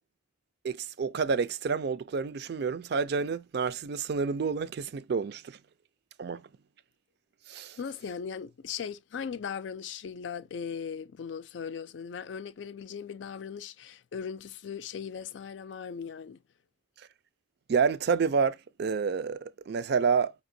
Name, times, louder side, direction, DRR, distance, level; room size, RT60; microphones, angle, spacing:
voice 1, 0.6-5.6 6.2-6.4 7.5-7.8 17.7-20.3, right 5 dB, 60° right, 0.4 m, -29 dB
voice 2, 7.8-16.4, left 6 dB, 85° left, 0.4 m, -38 dB
5.1 x 2.9 x 2.7 m
head